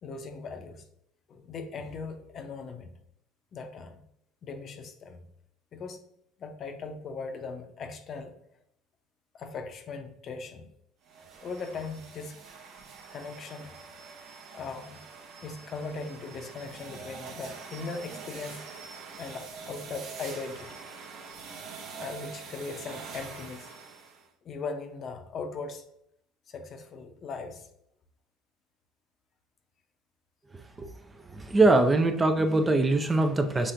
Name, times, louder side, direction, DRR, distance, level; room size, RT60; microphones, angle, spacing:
voice 1, 0.0-0.9 1.3-2.9 3.5-4.0 4.4-5.2 5.7-6.0 6.4-8.4 9.3-10.7 11.4-12.4 13.1-13.7 14.5-15.0 15.4-18.7 19.2-20.8 22.0-23.7 24.4-25.8 26.5-27.7, left 4 dB, 45° left, 6 dB, 0.6 m, -39 dB
sound 1, 11.0-24.3, right 5 dB, 60° right, 0.8 m, -45 dB
voice 2, 31.3-33.7, right 2 dB, 20° right, 7 dB, 0.5 m, -22 dB
5.9 x 3.3 x 2.5 m, 0.74 s
supercardioid pair, 95°, 0 cm